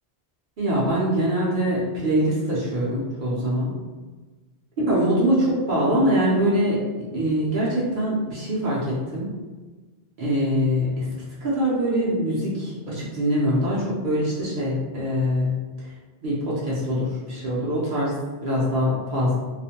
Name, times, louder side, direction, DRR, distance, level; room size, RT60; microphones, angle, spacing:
voice 1, 0.6-3.7 4.9-6.8 7.1-9.3 10.2-11.1 11.4-15.6 16.2-18.1 18.4-19.3, equal, 55° right, -7 dB, 0.7 m, -23 dB
2.4 x 2.1 x 2.7 m, 1.3 s
omnidirectional pair, 1.0 m